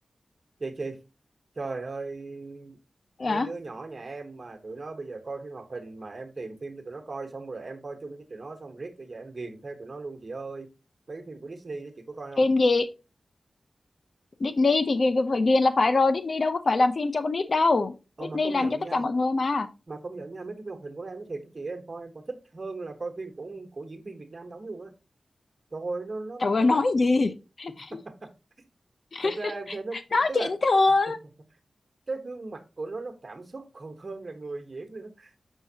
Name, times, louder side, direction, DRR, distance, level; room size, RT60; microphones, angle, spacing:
voice 1, 0.6-1.0 1.6-2.8 3.2-10.7 11.1-12.5 18.2-19.1 19.9-24.9 25.7-26.8 27.9-28.3 29.2-30.5 32.1-35.3, right 3 dB, 45° right, 6 dB, 1.1 m, -38 dB
voice 2, 12.4-12.9 14.4-17.9 18.3-19.7 26.4-27.3 27.6-27.9 29.1-29.3 30.1-31.2, left 3 dB, 60° left, 10 dB, 0.6 m, -23 dB
6.0 x 5.6 x 2.8 m, 0.29 s
wide cardioid pair, 75°, 0 cm